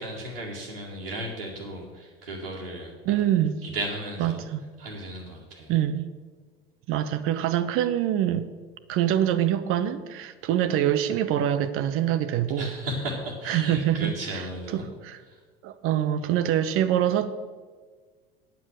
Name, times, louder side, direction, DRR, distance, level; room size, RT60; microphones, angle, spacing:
voice 1, 0.0-3.3 3.6-4.5 4.8-5.7 12.6-14.9 15.3-15.4, right 1 dB, 85° right, -6 dB, 2.0 m, -35 dB
voice 2, 3.0-3.6 4.2-4.6 5.7-6.1 6.9-8.5 8.9-12.7 13.5-14.4 14.7-15.2 15.6-17.3, right 11 dB, 50° right, 12 dB, 0.9 m, -25 dB
9.9 x 9.4 x 6.3 m, 1.5 s
figure-of-eight pair, 65°, 29 cm